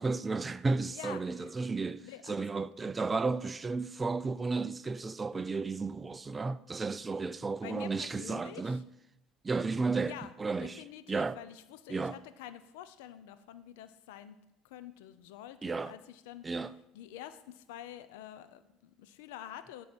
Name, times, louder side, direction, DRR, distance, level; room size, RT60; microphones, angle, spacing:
voice 1, 0.0-8.8 9.4-10.1 10.4-10.8 11.1-11.4 11.9-12.1 15.6-15.9 16.4-16.7, right 4 dB, 20° right, 0.4 m, -33 dB
voice 2, 0.9-1.5 2.0-2.7 7.6-8.8 10.1-10.3 10.6-14.4 14.6-16.5 16.9-19.8, left 11 dB, 85° left, 0.6 m, -47 dB
11.5 x 3.9 x 6.1 m
supercardioid pair, 100°, 0 cm